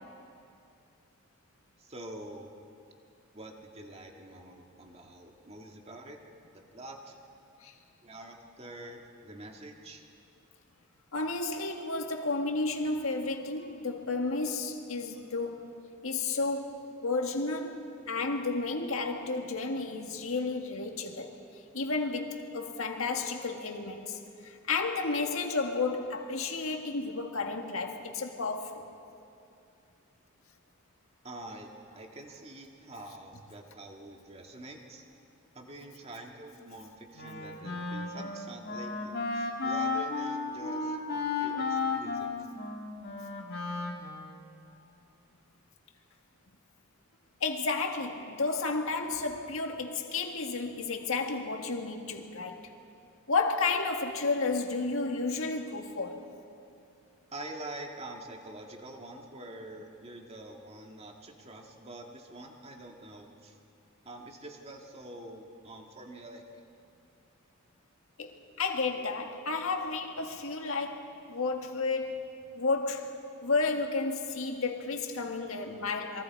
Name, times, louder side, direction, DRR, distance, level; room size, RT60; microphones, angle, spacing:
voice 1, 1.8-2.5 3.3-6.2 6.5-7.2 8.0-10.0 31.2-35.0 35.5-42.4 57.3-63.6 64.0-66.6, right 1 dB, 30° right, 2 dB, 1.8 m, -46 dB
voice 2, 11.1-15.7 16.0-21.3 21.7-28.8 47.4-52.7 53.3-56.3 68.2-72.2 72.6-73.1 73.4-76.2, left 3 dB, 75° left, 3 dB, 1.9 m, -32 dB
Wind instrument woodwind instrument, 37.2-44.5, left 4 dB, 50° left, 2.0 m, -34 dB
27.5 x 23.0 x 4.7 m, 2.6 s
head